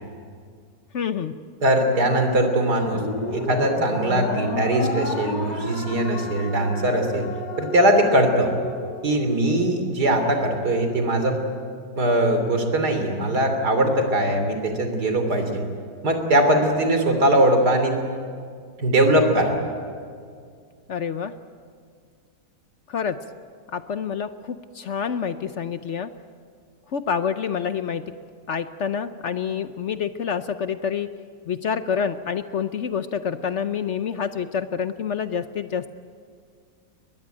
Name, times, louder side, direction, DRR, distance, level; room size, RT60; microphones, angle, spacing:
voice 1, 0.9-1.4 20.9-21.3 22.9-23.2 23.7-26.1 26.9-28.1 28.5-31.1 31.5-35.9, left 7 dB, 60° left, 11 dB, 0.8 m, -27 dB
voice 2, 1.6-3.0 3.3-7.3 7.6-8.5 9.0-11.4 12.0-15.7 16.0-18.0 18.8-19.5, right 1 dB, 60° right, 6 dB, 3.6 m, -21 dB
sound 1, 2.9-9.4, left 2 dB, 90° left, 3.3 m, -31 dB
22.0 x 21.0 x 9.1 m, 2.1 s
omnidirectional pair, 1.9 m